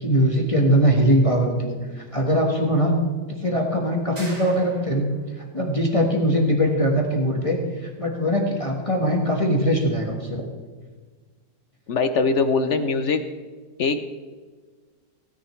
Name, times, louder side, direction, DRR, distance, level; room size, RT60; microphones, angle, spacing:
voice 1, 0.0-3.0 3.3-5.1 5.5-7.6 8.0-10.4, equal, 20° left, 0 dB, 1.4 m, -21 dB
sound 1, 4.2-5.2, right 1 dB, 50° right, 3.3 m, -41 dB
voice 2, 11.9-13.2 13.8-14.0, left 4 dB, 60° left, 9 dB, 0.8 m, -21 dB
16.5 x 10.0 x 3.2 m, 1.4 s
omnidirectional pair, 1.8 m